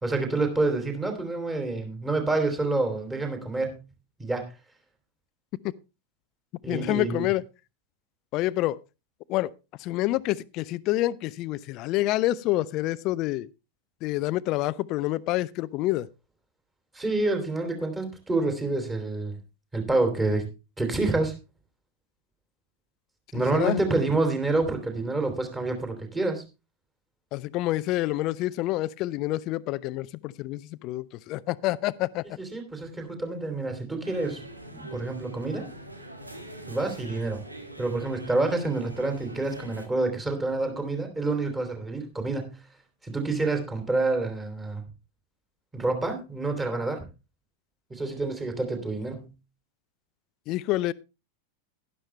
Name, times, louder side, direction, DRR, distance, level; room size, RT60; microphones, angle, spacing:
voice 1, 0.0-3.8 4.2-4.5 6.6-7.2 16.9-19.4 19.7-20.4 20.8-21.3 23.3-26.4 32.4-35.7 36.7-37.4 37.8-42.7 43.0-44.8 45.7-47.1 47.9-49.3, right 2 dB, 10° right, 3.3 m, -28 dB
voice 2, 6.7-7.4 8.3-8.8 9.3-9.5 9.8-13.5 14.0-16.1 23.3-23.8 27.3-32.2 50.5-50.9, left 16 dB, 40° left, 0.5 m, -27 dB
sound 1, 34.0-39.9, right 1 dB, 85° right, 1.8 m, -43 dB
12.0 x 11.0 x 3.2 m
figure-of-eight pair, 90°, 0 cm